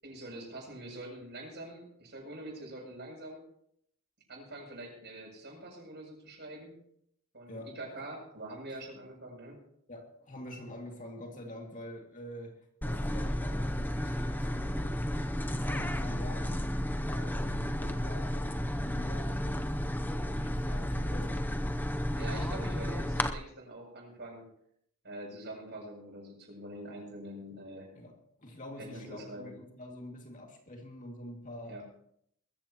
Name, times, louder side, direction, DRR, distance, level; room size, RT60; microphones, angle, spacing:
voice 1, 0.0-3.4 4.3-6.8 7.3-9.6 22.1-24.4 25.0-27.9 28.8-29.5 31.7-31.8, right 1 dB, 50° right, 0 dB, 7.7 m, -44 dB
voice 2, 9.9-15.0 15.5-16.7 17.1-19.7 20.2-21.5 27.9-28.1 28.4-31.8, left 1 dB, 35° left, 1 dB, 2.3 m, -46 dB
sound 1, 12.8-23.3, equal, 10° left, 0.7 m, -32 dB
21.0 x 15.5 x 3.0 m, 0.68 s
head